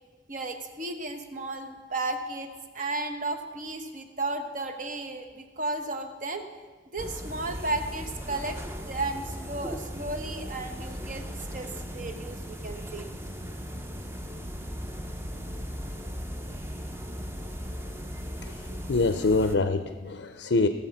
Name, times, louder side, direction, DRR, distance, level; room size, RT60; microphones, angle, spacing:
voice 1, 0.3-2.5 2.7-6.5 6.9-8.6 8.9-11.2 11.5-13.1, right 2 dB, 45° right, 6 dB, 1.1 m, -34 dB
sound 1, 7.0-19.6, equal, 15° right, 0.7 m, -37 dB
voice 2, 18.4-20.7, left 3 dB, 80° left, 9 dB, 0.6 m, -25 dB
17.5 x 7.3 x 5.8 m, 1.4 s
head